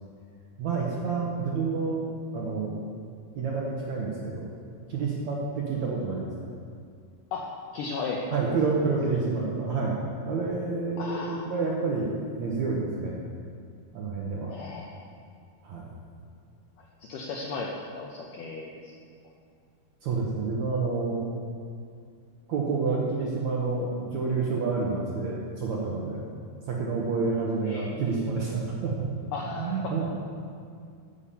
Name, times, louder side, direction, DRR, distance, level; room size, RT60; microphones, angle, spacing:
voice 1, 0.6-2.0 2.3-2.7 3.4-4.5 4.9-6.3 8.3-10.0 10.2-13.2 13.9-14.5 15.6-15.9 20.0-21.3 22.5-26.2 26.7-29.2 29.5-30.1, right 4 dB, 75° right, -3 dB, 1.6 m, -29 dB
voice 2, 7.3-8.8 11.0-11.5 14.5-15.1 16.8-18.9 27.6-27.9 29.3-30.0, left 4 dB, 85° left, -1 dB, 1.9 m, -36 dB
14.0 x 7.0 x 5.7 m, 2.3 s
omnidirectional pair, 5.0 m